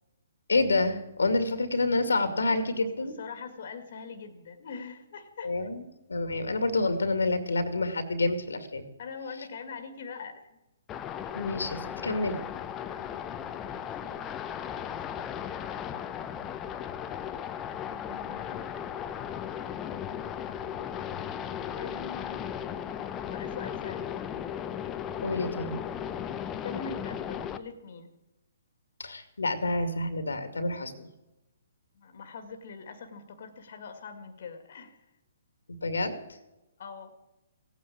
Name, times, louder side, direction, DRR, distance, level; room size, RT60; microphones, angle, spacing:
voice 1, 0.5-3.1 5.4-5.8 6.1-8.8 11.3-12.4 25.2-25.8 29.0-31.1 35.8-36.1, left 2 dB, 85° left, 9 dB, 2.3 m, -28 dB
voice 2, 3.0-5.7 9.0-10.6 12.8-16.1 17.9-18.7 21.7-22.5 23.3-24.2 26.6-28.1 32.0-35.0 36.8-37.1, left 5 dB, 55° left, 7 dB, 2.0 m, -43 dB
sound 1, 10.9-27.6, left 9 dB, 20° left, 0.9 m, -36 dB
17.0 x 9.4 x 8.5 m, 0.94 s
hypercardioid pair, 135°, 0 cm